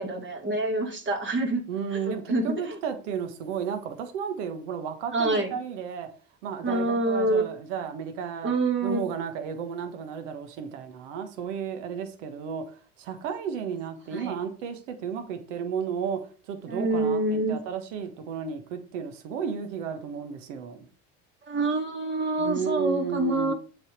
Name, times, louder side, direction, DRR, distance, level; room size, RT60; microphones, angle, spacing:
voice 1, 0.0-1.6 1.9-2.8 5.1-5.5 6.6-7.5 8.4-9.1 14.1-14.3 16.7-17.6 21.4-23.5, right 2 dB, 30° right, 3 dB, 2.5 m, -26 dB
voice 2, 1.7-6.1 6.4-8.5 8.8-20.8 22.4-23.5, right 7 dB, 85° right, 7 dB, 1.4 m, -33 dB
8.1 x 4.1 x 5.1 m, 0.38 s
supercardioid pair, 95°, 35 cm